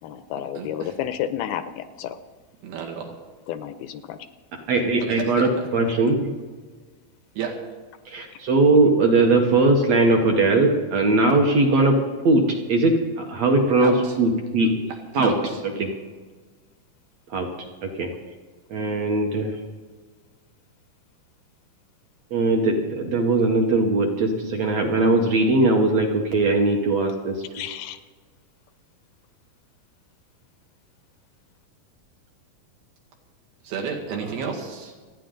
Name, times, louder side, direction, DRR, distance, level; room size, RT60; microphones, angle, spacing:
voice 1, 0.0-2.2 3.5-4.2 4.7-4.8 27.5-28.0, left 10 dB, 80° left, 11 dB, 2.4 m, -31 dB
voice 2, 0.6-0.9 2.6-3.1 5.0-5.7 7.4-7.6 13.8-14.2 15.1-15.6 33.6-34.9, right 6 dB, 80° right, 0 dB, 4.1 m, -32 dB
voice 3, 4.7-6.3 8.1-14.7 15.2-15.3 15.8-15.9 17.3-17.5 17.8-18.1 18.7-19.5 22.3-27.4, right 2 dB, 60° right, 2 dB, 1.8 m, -20 dB
28.0 x 10.0 x 3.9 m, 1.4 s
omnidirectional pair, 4.5 m